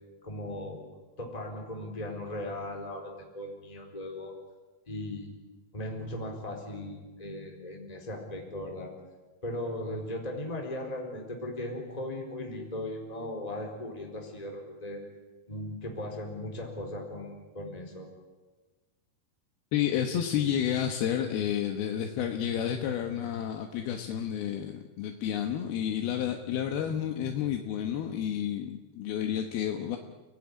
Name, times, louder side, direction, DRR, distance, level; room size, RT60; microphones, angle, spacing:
voice 1, 0.2-0.8 1.2-4.3 4.9-5.3 5.7-8.9 9.4-15.0 15.5-18.1, left 1 dB, 10° left, 1 dB, 3.8 m, -38 dB
voice 2, 19.7-30.0, left 9 dB, 80° left, 4 dB, 3.2 m, -30 dB
30.0 x 17.5 x 9.9 m, 1.3 s
omnidirectional pair, 4.4 m